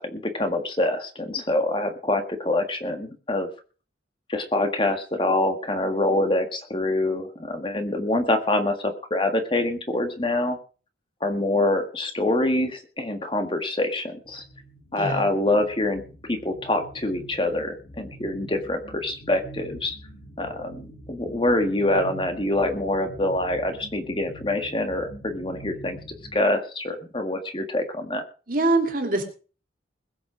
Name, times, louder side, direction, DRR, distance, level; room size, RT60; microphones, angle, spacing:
voice 1, 0.0-3.5 4.3-10.6 11.2-14.4 14.9-16.0 16.3-19.9 20.4-26.0 26.3-28.2, left 1 dB, 25° left, 6 dB, 1.6 m, -25 dB
sound 1, 14.3-26.4, right 1 dB, 60° left, 3.5 m, -44 dB
voice 2, 14.9-15.3 28.5-29.2, right 2 dB, 50° right, 5 dB, 2.8 m, -23 dB
21.0 x 7.2 x 5.0 m, 0.38 s
head